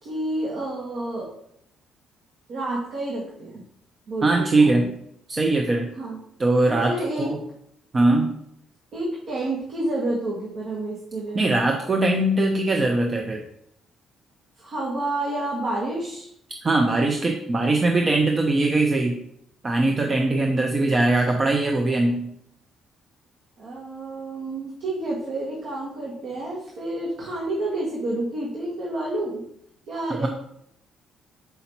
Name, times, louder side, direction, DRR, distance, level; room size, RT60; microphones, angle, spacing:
voice 1, 0.0-1.3 2.5-3.6 4.1-4.9 5.9-6.2 6.7-7.3 8.9-11.5 14.6-16.3 23.6-29.4 29.9-30.3, right 2 dB, 60° right, -4 dB, 1.7 m, -29 dB
voice 2, 4.2-4.9 5.3-5.9 6.4-7.4 7.9-8.3 11.3-13.4 16.6-19.2 19.6-22.3 30.2-30.3, right 2 dB, 30° right, 2 dB, 0.7 m, -21 dB
6.8 x 5.6 x 2.9 m, 0.72 s
cardioid pair, 110°, 0 cm